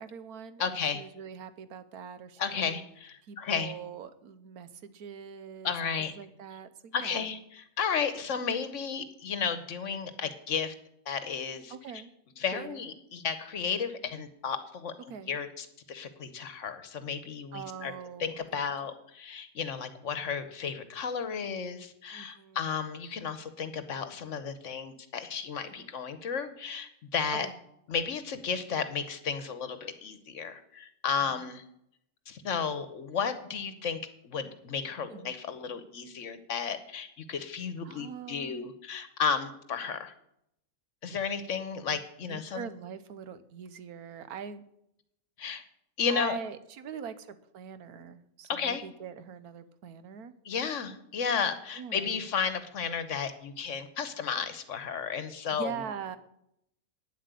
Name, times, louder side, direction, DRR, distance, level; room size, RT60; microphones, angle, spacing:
voice 1, 0.0-2.8 3.2-5.7 6.0-7.3 11.7-12.1 12.5-12.8 15.1-15.4 17.5-18.3 22.1-22.6 25.7-25.9 27.4-27.6 31.2-31.4 35.1-35.4 37.8-38.7 41.1-41.2 42.2-44.6 46.1-50.3 51.8-52.2 55.5-56.2, right 7 dB, 90° right, 12 dB, 1.4 m, -43 dB
voice 2, 0.6-1.0 2.4-3.7 5.6-6.1 6.9-10.7 11.1-12.0 12.4-17.9 18.2-27.5 27.9-31.6 32.3-40.1 41.0-42.7 45.4-45.6 46.0-46.4 48.5-48.8 50.4-55.8, left 6 dB, 60° left, 11 dB, 1.2 m, -33 dB
9.4 x 7.7 x 8.2 m, 0.77 s
omnidirectional pair, 1.5 m